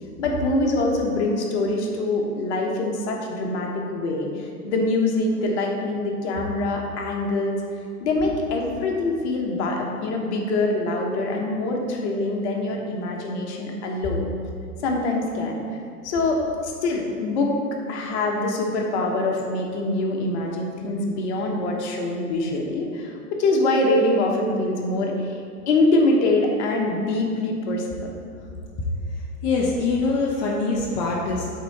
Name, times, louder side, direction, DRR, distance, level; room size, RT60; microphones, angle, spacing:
voice 1, 0.2-7.6 8.0-14.3 14.8-15.8 16.0-17.6 17.9-25.4 25.7-28.1, left 2 dB, 45° left, 0 dB, 1.2 m, -24 dB
voice 2, 29.2-31.5, left 3 dB, 25° left, -3 dB, 0.6 m, -24 dB
8.2 x 3.8 x 4.2 m, 2.4 s
hypercardioid pair, 120°, 47 cm